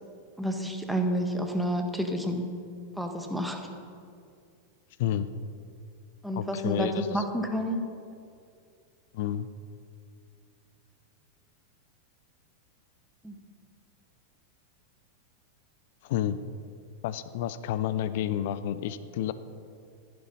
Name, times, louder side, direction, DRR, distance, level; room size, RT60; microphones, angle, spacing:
voice 1, 0.4-2.5 3.0-3.6 6.2-7.9 13.2-13.4, equal, ahead, 4 dB, 1.4 m, -29 dB
voice 2, 6.4-7.2 9.1-9.5 16.0-16.4 17.0-19.3, left 11 dB, 50° left, 14 dB, 0.6 m, -30 dB
14.5 x 11.0 x 5.4 m, 2.4 s
figure-of-eight pair, 90°, 0 cm